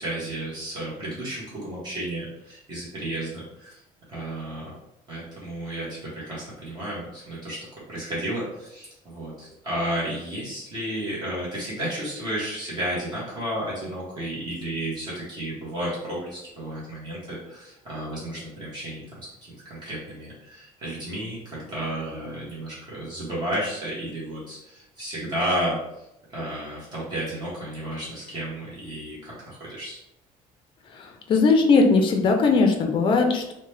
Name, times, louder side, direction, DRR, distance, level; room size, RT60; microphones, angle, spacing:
voice 1, 0.0-3.8 4.1-4.6 5.1-19.3 19.6-25.8 26.3-30.0, right 1 dB, 30° right, -8 dB, 1.0 m, -32 dB
voice 2, 30.9-33.5, left 4 dB, 35° left, 3 dB, 0.4 m, -19 dB
2.7 x 2.1 x 3.1 m, 0.85 s
cardioid pair, 165°, 14 cm